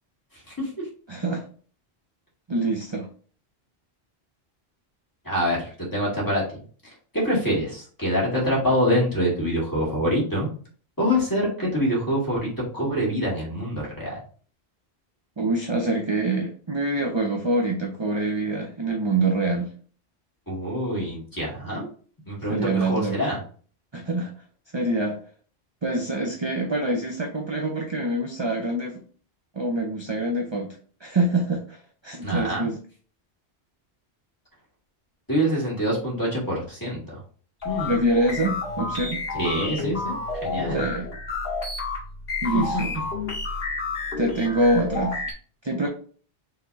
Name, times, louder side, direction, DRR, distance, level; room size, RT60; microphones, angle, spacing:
voice 1, 1.1-1.4 2.5-3.1 15.4-19.7 22.5-23.2 23.9-24.3 24.7-25.2 25.8-29.0 29.5-30.7 31.0-31.8 32.0-32.8 37.9-39.2 40.7-41.1 42.4-43.0 44.2-45.2 45.6-45.9, right 2 dB, 30° right, 1 dB, 0.6 m, -25 dB
voice 2, 5.2-6.4 6.8-10.5 11.0-14.2 20.5-21.9 22.3-23.4 32.2-32.7 35.3-37.0 37.6-38.0 39.3-40.1 40.4-40.8 42.5-42.6, equal, 20° left, -5 dB, 2.3 m, -25 dB
sound 1, 37.6-45.3, left 3 dB, 55° left, 2.5 m, -30 dB
5.7 x 3.3 x 2.7 m, 0.42 s
omnidirectional pair, 1.1 m